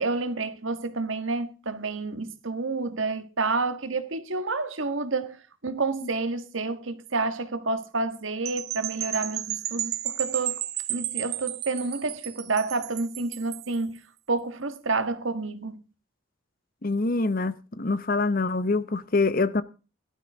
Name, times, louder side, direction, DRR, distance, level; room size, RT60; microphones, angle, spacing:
voice 1, 0.0-10.6 10.9-14.0 14.3-15.8, right 3 dB, 70° right, 1.5 m, -29 dB
sound 1, 8.4-13.7, right 12 dB, 50° right, 1.2 m, -33 dB
voice 2, 16.8-19.6, left 3 dB, 45° left, 0.8 m, -25 dB
17.0 x 12.5 x 3.5 m
head